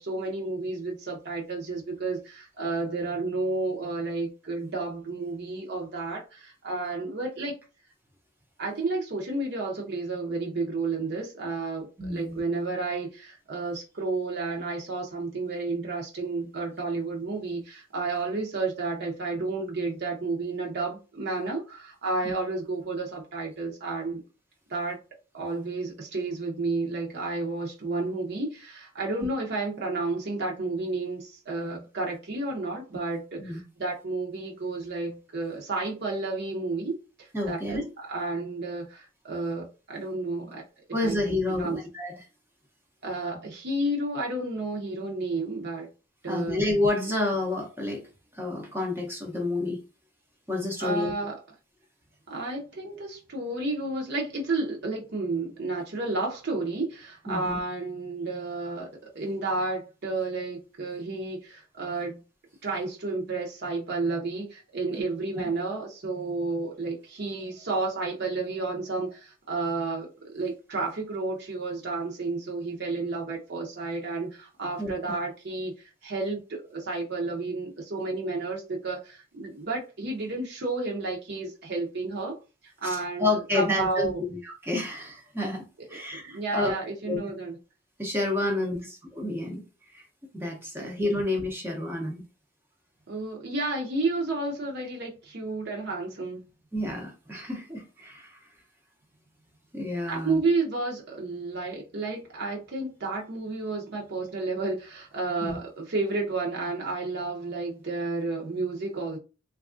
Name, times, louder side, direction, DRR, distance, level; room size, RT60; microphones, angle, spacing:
voice 1, 0.0-7.5 8.6-24.2 24.7-25.0 25.3-40.6 41.0-41.2 41.5-41.8 43.0-45.9 46.2-46.6 50.8-51.3 52.3-58.9 59.1-62.2 62.6-82.4 82.6-84.2 86.1-87.6 88.5-88.9 90.8-90.9 93.1-96.4 100.1-109.2, right 3 dB, 55° right, 0.7 m, -31 dB
voice 2, 12.0-12.4 33.4-33.6 37.3-37.8 40.9-42.2 46.3-48.0 48.3-49.8 50.5-51.1 57.3-57.6 65.3-65.4 74.8-74.9 82.8-86.7 87.1-87.2 88.0-89.6 89.9-90.0 90.3-92.2 96.7-98.4 99.7-100.4 105.4-105.6, left 2 dB, 10° right, 0.6 m, -29 dB
3.3 x 2.3 x 2.5 m
head